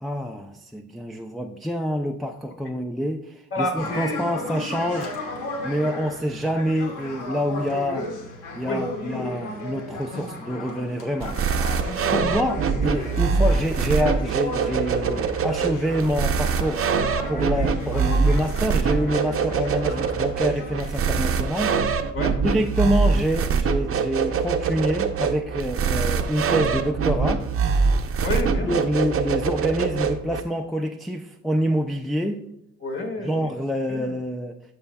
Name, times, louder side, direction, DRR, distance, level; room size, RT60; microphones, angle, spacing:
voice 1, 0.0-5.1 5.6-8.1 8.6-11.7 12.1-16.8 17.3-21.8 22.4-27.4 28.7-32.4 33.2-34.5, equal, ahead, 4 dB, 0.4 m, -26 dB
voice 2, 3.5-4.2 8.7-8.8 10.1-10.4 11.8-12.1 13.2-13.4 17.4-17.7 22.1-22.4 28.2-28.9 32.8-33.5 33.9-34.1, left 2 dB, 45° left, 3 dB, 1.7 m, -30 dB
sound 1, 3.7-21.1, left 2 dB, 85° left, 1.4 m, -36 dB
sound 2, 11.2-30.4, right 5 dB, 50° right, 0.7 m, -24 dB
12.5 x 5.5 x 2.2 m, 0.83 s
cardioid pair, 90°, 30 cm